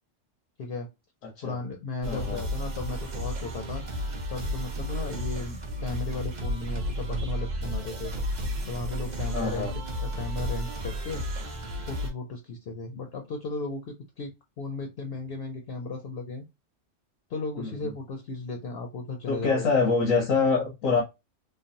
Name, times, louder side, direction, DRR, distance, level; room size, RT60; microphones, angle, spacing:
voice 1, 1.4-3.8 4.3-8.1 8.7-11.2 11.9-16.4 17.3-19.7, left 3 dB, 60° left, 0.7 m, -35 dB
sound 1, 2.0-12.1, equal, 45° right, 0.7 m, -32 dB
voice 2, 2.1-2.4 9.3-9.7 17.6-17.7 19.3-21.0, left 4 dB, 90° left, 1.2 m, -25 dB
3.2 x 2.2 x 2.6 m
omnidirectional pair, 1.3 m